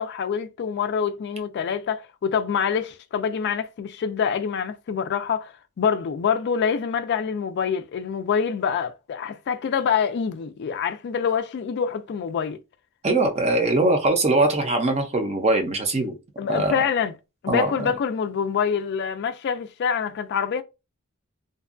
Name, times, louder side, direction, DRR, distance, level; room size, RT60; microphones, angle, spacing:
voice 1, 0.0-12.6 16.4-17.1 17.4-20.6, left 7 dB, 50° left, 0.3 m, -26 dB
voice 2, 13.0-16.1 16.5-16.7 17.5-17.9, right 2 dB, 30° right, 0.5 m, -22 dB
2.6 x 2.3 x 2.4 m
head